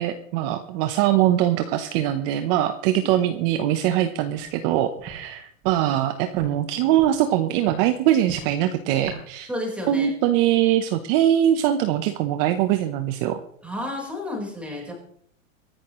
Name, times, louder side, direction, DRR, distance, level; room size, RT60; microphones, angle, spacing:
voice 1, 0.0-9.5 9.9-13.4, right 12 dB, 45° right, 8 dB, 1.1 m, -22 dB
Walk footsteps, 4.3-4.5 5.0-5.2 5.6-5.8 6.3-6.5 6.9-7.2 7.6-7.8 8.2-8.5 9.0-9.2, right 6 dB, 25° right, 4.5 m, -38 dB
voice 2, 9.5-10.1 13.6-14.9, left 1 dB, 5° right, -1 dB, 4.6 m, -31 dB
24.5 x 11.0 x 3.2 m, 0.65 s
supercardioid pair, 145°, 40 cm